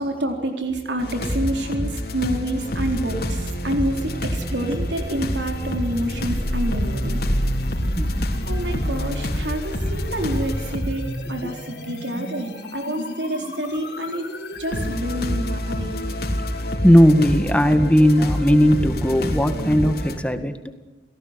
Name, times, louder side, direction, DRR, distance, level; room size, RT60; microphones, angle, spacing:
voice 1, 0.0-7.2 8.5-11.0 11.3-14.3 14.6-16.0, right 1 dB, 85° right, 3 dB, 4.0 m, -28 dB
sound 1, 1.0-10.9 11.6-11.7 12.6-12.7 14.7-20.2, equal, 60° left, 3.4 m, -27 dB
sound 2, 3.5-15.0, equal, 75° left, 3.7 m, -31 dB
voice 2, 8.0-8.3 11.4-11.5 16.5-20.7, equal, 5° left, 8 dB, 1.9 m, -17 dB
29.5 x 18.5 x 8.2 m, 1.2 s
head